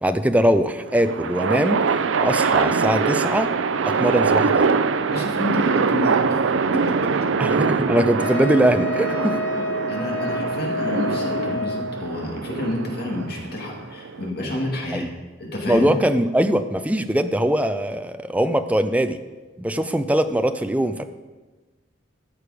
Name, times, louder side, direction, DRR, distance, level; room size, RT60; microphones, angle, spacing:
voice 1, 0.0-1.8 2.2-3.5 3.8-4.7 7.4-9.4 14.9-15.1 15.7-19.2 19.6-21.0, right 1 dB, 5° right, 9 dB, 0.4 m, -21 dB
sound 1, 0.9-14.3, right 5 dB, 85° right, 0.5 m, -23 dB
voice 2, 5.1-6.4 6.7-7.3 9.5-15.1 15.4-15.9, left 1 dB, 55° left, -1 dB, 2.3 m, -29 dB
Wind instrument woodwind instrument, 8.2-12.0, left 2 dB, 85° left, 0.8 m, -28 dB
14.0 x 6.7 x 5.0 m, 1.3 s
head